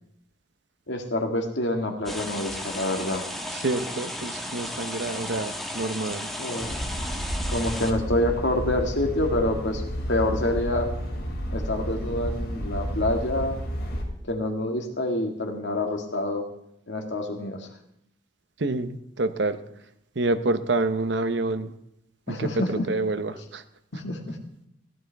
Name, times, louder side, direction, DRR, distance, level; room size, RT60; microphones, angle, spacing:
voice 1, 0.9-3.2 6.4-6.8 7.5-9.8 10.1-10.9 11.5-13.6 14.3-16.4 16.9-17.7 22.3-22.8 23.9-24.4, left 1 dB, 70° left, 3 dB, 2.0 m, -27 dB
sound 1, 2.1-7.9, left 1 dB, ahead, 1.2 m, -34 dB
voice 2, 3.5-6.3 18.6-19.6 20.2-21.7 22.3-23.6, right 2 dB, 65° right, 10 dB, 0.8 m, -27 dB
sound 2, 6.6-14.1, equal, 55° left, 3.0 m, -31 dB
17.0 x 11.5 x 3.5 m, 0.78 s
head